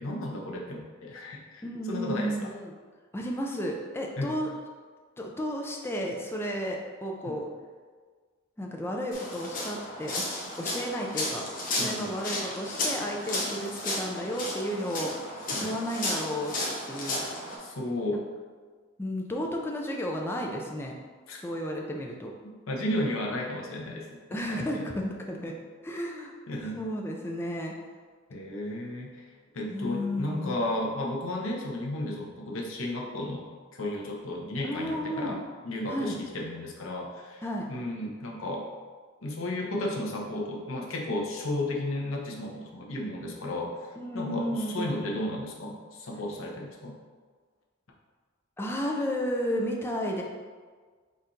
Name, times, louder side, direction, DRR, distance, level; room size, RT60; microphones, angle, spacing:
voice 1, 0.0-2.5 4.2-4.4 7.3-7.4 11.8-12.1 15.5-15.8 17.6-18.3 21.3-21.4 22.7-24.6 26.5-26.8 28.3-29.3 29.5-33.5 33.7-38.7 39.2-43.7 44.1-47.0, left 1 dB, 85° left, -1 dB, 0.7 m, -33 dB
voice 2, 1.6-2.7 3.1-4.5 5.2-7.4 8.6-11.4 11.8-15.1 15.6-16.5 16.9-17.2 19.0-20.9 21.4-22.3 24.3-25.5 25.8-26.3 26.8-27.7 29.7-30.6 34.6-35.4 35.9-36.2 37.4-37.7 44.0-45.0 48.6-50.2, equal, 10° left, 0 dB, 0.4 m, -33 dB
sound 1, 9.1-17.6, left 2 dB, 45° left, 0.7 m, -33 dB
4.3 x 2.5 x 3.8 m, 1.5 s
head